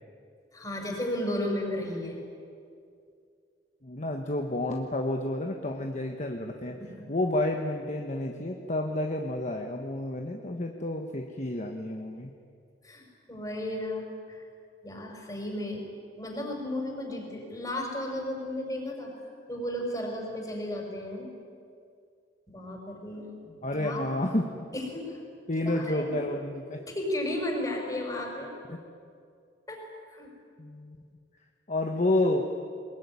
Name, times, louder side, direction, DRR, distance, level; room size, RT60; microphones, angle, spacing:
voice 1, 0.5-2.2 6.7-7.1 12.8-14.4 14.8-15.9 16.2-19.1 19.5-21.3 22.5-24.1 24.7-25.2 25.6-26.2 26.9-28.5 29.7-30.3, left 1 dB, 20° left, 1 dB, 5.7 m, -34 dB
voice 2, 3.8-6.8 7.1-12.3 23.6-24.5 25.5-26.8 28.7-28.8 30.6-31.0 31.7-32.4, left 1 dB, 40° left, 3 dB, 1.3 m, -30 dB
22.0 x 21.0 x 9.7 m, 2.4 s
head